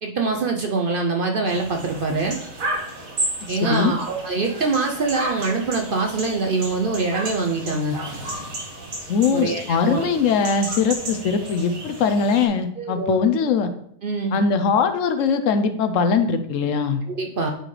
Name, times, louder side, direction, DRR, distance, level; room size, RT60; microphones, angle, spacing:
voice 1, 0.0-2.4 3.5-8.0 9.3-10.1 10.7-10.8 12.8-13.1 14.0-14.4 17.1-17.5, right 3 dB, 50° right, 2 dB, 0.7 m, -24 dB
sound 1, 1.5-12.5, right 2 dB, 85° right, 1.9 m, -33 dB
voice 2, 3.5-3.9 9.1-13.7 14.3-17.0, left 5 dB, 70° left, 9 dB, 1.0 m, -21 dB
9.0 x 4.4 x 3.2 m, 0.68 s
omnidirectional pair, 1.4 m